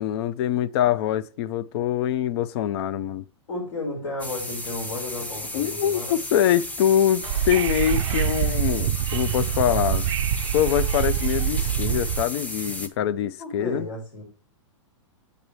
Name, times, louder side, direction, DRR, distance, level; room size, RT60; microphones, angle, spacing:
voice 1, 0.0-3.2 5.5-10.1 10.5-13.9, left 10 dB, 55° left, 0.5 m, -24 dB
voice 2, 3.5-6.2 13.4-14.2, left 2 dB, 75° left, 4.4 m, -33 dB
sound 1, 4.2-12.9, left 1 dB, 10° left, 0.7 m, -34 dB
Wind / Subway metro underground, 7.2-12.2, right 11 dB, 65° right, 0.4 m, -25 dB
8.4 x 8.1 x 3.1 m
hypercardioid pair, 130°, 16 cm